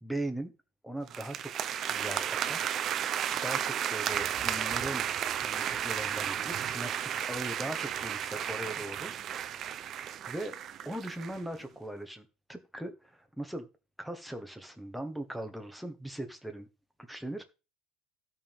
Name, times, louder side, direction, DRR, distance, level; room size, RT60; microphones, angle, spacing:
voice 1, 0.0-0.5 0.8-2.8 3.3-5.1 5.4-9.5 10.3-10.5 10.8-13.7 14.0-16.7 17.0-17.4, right 1 dB, ahead, 6 dB, 1.4 m, -39 dB
sound 1, 1.1-11.4, right 9 dB, 40° right, 0.6 m, -33 dB
16.0 x 5.5 x 3.6 m, 0.31 s
cardioid pair, 150°, 0 cm